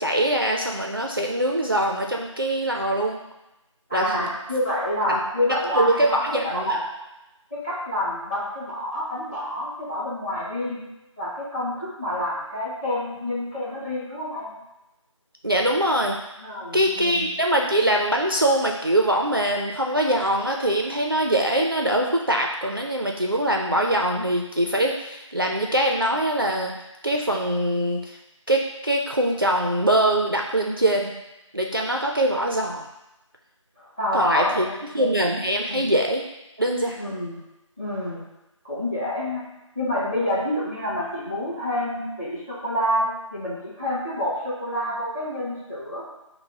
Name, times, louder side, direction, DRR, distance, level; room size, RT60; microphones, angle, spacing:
voice 1, 0.0-3.2 3.9-4.3 5.1-5.2 5.5-6.8 15.4-16.2 16.7-26.7 27.0-28.2 28.5-31.1 31.5-32.8 34.1-34.7 34.9-36.2 36.6-37.1, right 1 dB, 45° right, 0 dB, 0.4 m, -23 dB
voice 2, 3.9-6.8 7.5-10.8 11.2-14.5 16.4-17.3 33.8-35.2 35.7-35.9 37.0-37.4 37.8-38.2 38.6-39.4 39.7-46.0, left 1 dB, 15° left, -10 dB, 1.1 m, -28 dB
5.5 x 2.0 x 3.8 m, 0.95 s
figure-of-eight pair, 170°, 17 cm